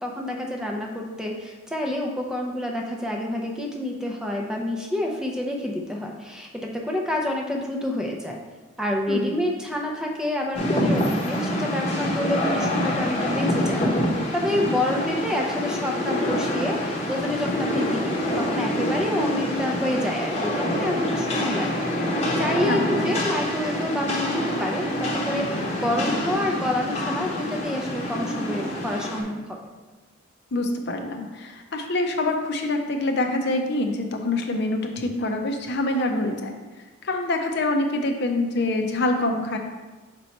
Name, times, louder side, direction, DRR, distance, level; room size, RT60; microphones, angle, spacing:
voice 1, 0.0-8.4 8.8-13.8 14.3-21.9 22.4-29.6, left 1 dB, 5° right, -1 dB, 0.5 m, -28 dB
voice 2, 9.1-9.4 22.7-22.8 30.5-36.6 37.0-39.6, left 2 dB, 55° left, 4 dB, 0.6 m, -25 dB
Rain, 10.5-29.2, left 1 dB, 30° left, 0.9 m, -26 dB
5.3 x 4.4 x 4.2 m, 1.2 s
head